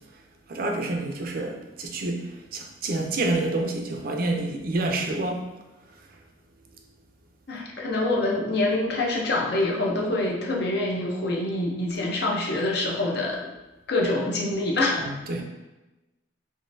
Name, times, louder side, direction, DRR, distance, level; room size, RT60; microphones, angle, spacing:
voice 1, 0.5-5.4 15.0-15.4, right 2 dB, 55° right, 3 dB, 0.5 m, -28 dB
voice 2, 7.5-13.5 13.9-15.0, left 2 dB, 60° left, -1 dB, 0.7 m, -25 dB
3.7 x 3.1 x 2.6 m, 1.1 s
head